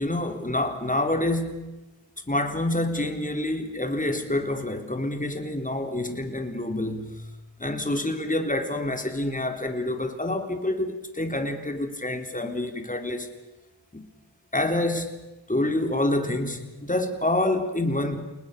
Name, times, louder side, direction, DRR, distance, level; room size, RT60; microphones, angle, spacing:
voice 1, 0.0-1.8 2.3-7.2 7.6-13.3 13.9-14.0 14.5-18.2, left 1 dB, 15° left, 6 dB, 3.8 m, -27 dB
30.0 x 20.0 x 6.8 m, 1.1 s
cardioid pair, 45°, 46 cm